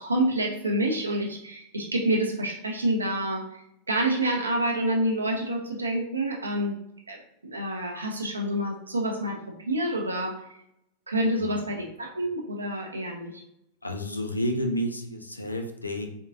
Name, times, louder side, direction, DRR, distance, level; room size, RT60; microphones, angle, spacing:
voice 1, 0.0-6.8 7.1-7.2 7.4-10.3 11.1-13.4, right 1 dB, 80° right, 0 dB, 0.6 m, -28 dB
voice 2, 11.2-11.6 13.8-16.1, equal, 85° left, 4 dB, 0.5 m, -30 dB
3.7 x 3.4 x 2.6 m, 0.78 s
figure-of-eight pair, 90°, 0 cm